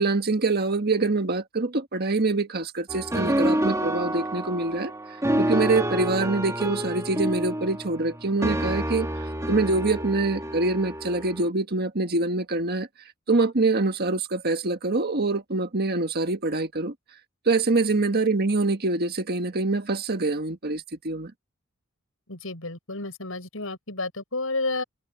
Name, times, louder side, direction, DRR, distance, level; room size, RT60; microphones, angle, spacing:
voice 1, 0.0-4.9 5.4-9.1 9.5-12.9 13.3-16.9 17.4-21.3, right 3 dB, 50° right, 1.6 m, -25 dB
sound 1, 2.9-11.5, right 1 dB, 15° right, 2.3 m, -28 dB
voice 2, 22.3-24.8, left 3 dB, 80° left, 7.7 m, -31 dB
head